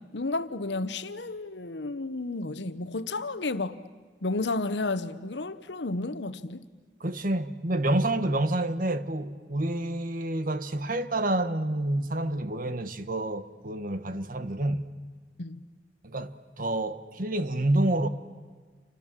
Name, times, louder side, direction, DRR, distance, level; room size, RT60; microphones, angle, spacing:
voice 1, 0.0-3.8 4.2-6.7 15.4-15.6, left 2 dB, 75° left, 1.1 m, -32 dB
voice 2, 7.0-14.9 16.0-18.1, right 1 dB, 50° right, 1.3 m, -28 dB
29.5 x 25.5 x 7.5 m
head